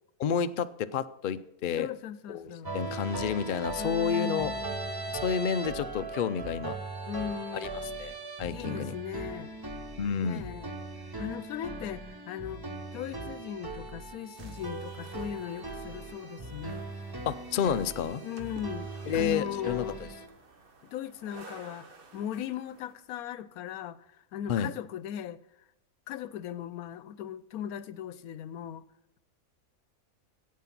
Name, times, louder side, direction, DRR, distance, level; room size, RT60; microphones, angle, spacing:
voice 1, 0.2-1.9 2.3-4.5 5.2-6.8 7.6-7.7 8.0-8.1 8.4-8.9 10.0-10.5 17.3-18.2 19.1-20.1 24.5-24.7, left 7 dB, 65° left, 0.5 m, -30 dB
voice 2, 1.8-2.8 3.8-5.2 7.1-8.0 8.5-9.6 10.2-10.7 11.2-12.6 12.9-16.8 18.2-20.0 20.8-24.1 24.3-25.4 26.1-28.9, left 10 dB, 85° left, 1.1 m, -38 dB
sound 1, 2.6-20.3, right 2 dB, 20° right, 0.7 m, -39 dB
sound 2, 14.4-22.9, right 3 dB, 40° right, 1.3 m, -54 dB
14.5 x 8.5 x 5.9 m
omnidirectional pair, 1.5 m